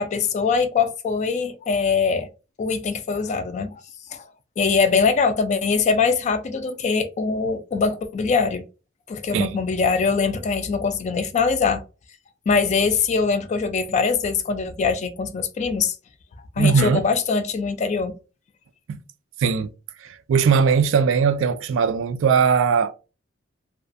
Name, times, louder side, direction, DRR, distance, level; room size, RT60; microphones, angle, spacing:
voice 1, 0.0-2.3 2.6-3.8 4.1-4.2 4.6-8.6 9.1-11.8 12.5-15.9 16.6-18.1, left 5 dB, 35° left, 0.3 m, -22 dB
voice 2, 16.6-17.0 19.4-19.7 20.0-22.9, right 6 dB, 65° right, 0.3 m, -19 dB
2.5 x 2.3 x 2.4 m
head